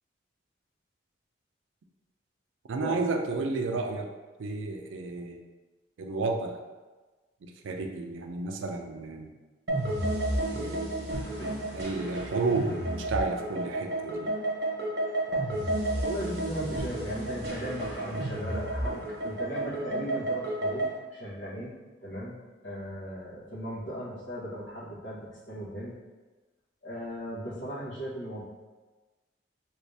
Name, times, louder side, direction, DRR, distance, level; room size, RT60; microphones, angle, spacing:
voice 1, 2.7-4.1 4.4-5.4 6.0-6.6 7.4-9.3 10.5-11.2 11.7-14.3 16.6-16.7, right 3 dB, 85° right, 4 dB, 0.4 m, -32 dB
sound 1, 9.7-21.0, right 1 dB, 55° right, 1.0 m, -31 dB
voice 2, 16.0-26.0 26.8-28.4, equal, 80° left, -8 dB, 1.3 m, -37 dB
3.1 x 2.7 x 3.2 m, 1.2 s
head